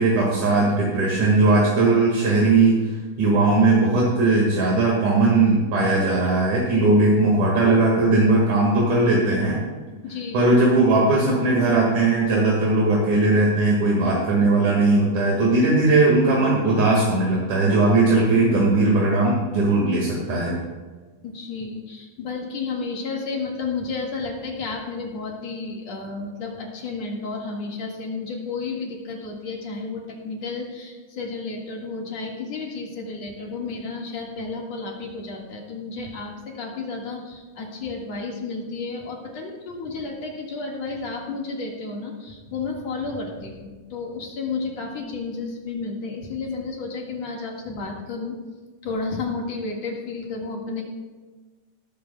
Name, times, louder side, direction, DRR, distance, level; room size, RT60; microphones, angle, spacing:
voice 1, 0.0-9.6 10.3-20.6, right 2 dB, 70° right, -4 dB, 3.3 m, -19 dB
voice 2, 10.0-10.5 21.2-48.4 48.8-50.8, left 4 dB, 60° left, -1 dB, 2.9 m, -32 dB
17.0 x 13.5 x 2.3 m, 1.3 s
omnidirectional pair, 3.6 m